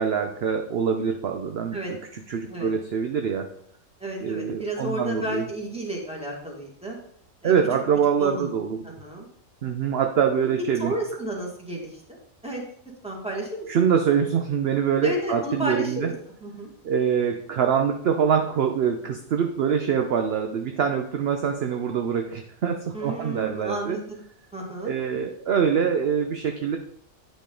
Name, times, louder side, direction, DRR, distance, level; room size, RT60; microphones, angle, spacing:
voice 1, 0.0-3.5 4.2-5.5 7.4-8.9 9.6-10.9 13.7-16.1 16.8-24.0 24.8-26.8, right 7 dB, 60° right, 5 dB, 0.8 m, -24 dB
voice 2, 4.0-7.0 7.4-7.5 8.2-9.3 10.8-12.2 12.4-12.6 13.0-13.7 15.0-16.1 16.4-16.7 22.9-24.2 24.5-25.0, right 1 dB, 5° right, -1 dB, 1.7 m, -32 dB
9.0 x 5.1 x 3.8 m, 0.63 s
omnidirectional pair, 1.4 m